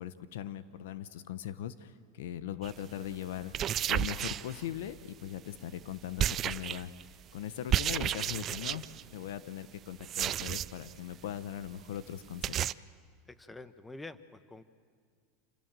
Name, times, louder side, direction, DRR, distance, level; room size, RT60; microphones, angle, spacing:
voice 1, 0.0-3.5 3.9-6.9 7.3-8.8 9.1-12.6, left 11 dB, 75° left, 13 dB, 1.0 m, -40 dB
sound 1, 2.6-2.8 3.4-5.0 6.2-7.0 7.7-9.0 10.0-10.9 11.2-11.3 11.6-11.7 12.0-12.1 12.4-12.7, right 10 dB, 40° right, 0.5 m, -32 dB
voice 2, 13.4-14.6, left 2 dB, 10° left, 12 dB, 1.2 m, -47 dB
28.0 x 15.5 x 7.6 m, 2.1 s
hypercardioid pair, 105°, 0 cm